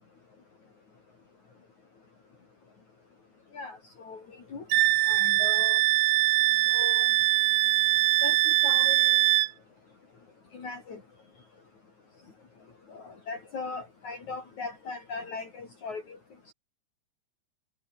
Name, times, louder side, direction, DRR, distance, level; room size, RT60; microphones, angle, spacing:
voice 1, 3.5-4.2 4.5-4.6 5.0-5.8 6.7-7.1 8.2-9.2 10.5-11.0 12.9-16.2, left 4 dB, 45° left, 6.0 m, -39 dB
Wind instrument woodwind instrument, 4.7-9.5, right 18 dB, 85° right, 1.8 m, -22 dB
omnidirectional pair, 4.7 m